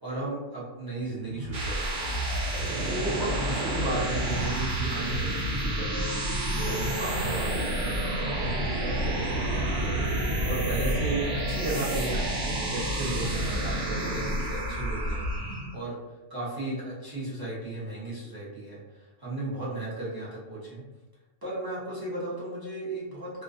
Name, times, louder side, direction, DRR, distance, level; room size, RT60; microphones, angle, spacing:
voice 1, 0.0-2.2 2.9-6.2 6.5-16.0 16.3-20.8 21.4-23.4, right 2 dB, 30° right, -8 dB, 0.4 m, -35 dB
sound 1, 1.2-15.8, right 1 dB, 75° right, 0.9 m, -29 dB
2.3 x 2.2 x 2.5 m, 1.1 s
omnidirectional pair, 1.4 m